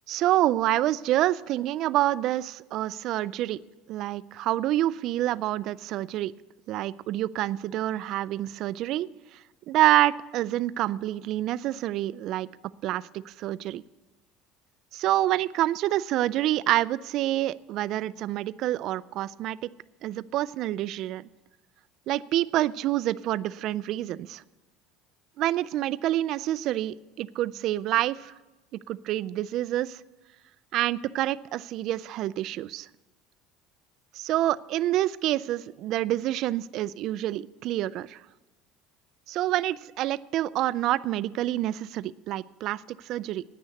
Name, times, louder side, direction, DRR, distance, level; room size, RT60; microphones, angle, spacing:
voice 1, 0.1-3.6 3.9-6.3 6.7-9.1 9.7-12.5 12.8-13.8 14.9-19.6 20.0-21.3 22.1-24.4 25.4-28.3 28.9-30.0 30.7-32.9 34.1-38.2 39.3-43.4, right 14 dB, 55° right, 18 dB, 0.4 m, -27 dB
9.5 x 9.4 x 8.5 m, 1.1 s
supercardioid pair, 125°, 0 cm